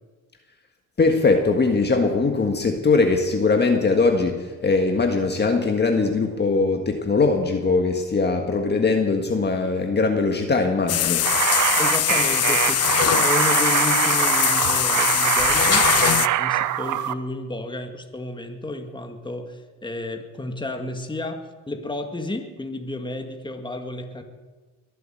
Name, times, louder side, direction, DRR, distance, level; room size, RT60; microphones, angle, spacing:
voice 1, 1.0-11.3, left 3 dB, 35° left, 4 dB, 1.7 m, -21 dB
sound 1, 10.9-16.3, left 12 dB, 55° left, 0.6 m, -21 dB
sound 2, 11.2-17.1, right 12 dB, 75° right, 0.8 m, -23 dB
voice 2, 11.8-12.9 13.2-24.2, left 2 dB, 15° left, 5 dB, 2.0 m, -32 dB
22.5 x 7.8 x 7.8 m, 1.3 s
cardioid pair, 90°, 30 cm